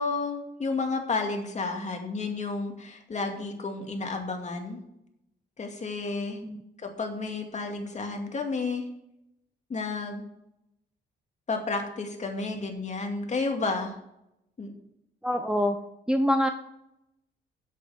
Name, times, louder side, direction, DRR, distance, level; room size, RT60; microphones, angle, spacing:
voice 1, 0.0-4.8 5.6-6.4 6.8-8.8 9.7-10.2 11.5-14.0 14.6-14.7, left 3 dB, 35° left, 3 dB, 2.4 m, -31 dB
voice 2, 15.2-15.8 16.1-16.5, equal, 5° right, 5 dB, 0.8 m, -25 dB
8.1 x 7.8 x 7.1 m, 0.84 s
cardioid pair, 90°, 20 cm